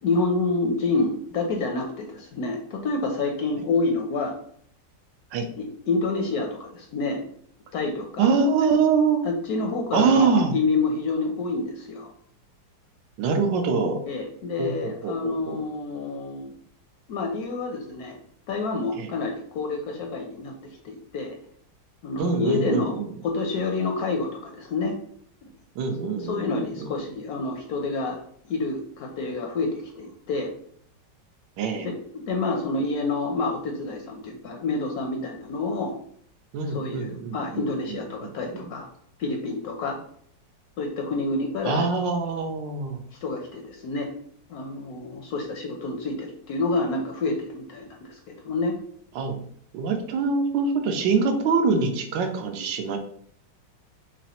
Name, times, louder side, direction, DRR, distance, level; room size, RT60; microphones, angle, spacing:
voice 1, 0.0-4.4 5.6-7.2 7.7-8.3 9.2-12.1 14.1-16.5 17.1-18.2 18.5-21.4 22.0-22.9 23.2-25.0 25.4-25.5 26.2-28.2 28.5-30.5 31.8-36.0 36.6-38.9 39.2-40.0 40.8-41.8 43.2-44.1 44.5-48.8, left 3 dB, 70° left, 2 dB, 0.9 m, -28 dB
voice 2, 8.2-9.2 9.9-10.5 13.2-14.0 14.6-15.6 19.0-19.1 22.2-23.1 25.8-26.9 31.6-31.9 36.5-38.7 41.6-43.0 49.1-49.4 49.7-53.0, right 4 dB, 85° right, 5 dB, 1.3 m, -24 dB
4.0 x 3.0 x 2.8 m, 0.63 s
omnidirectional pair, 2.0 m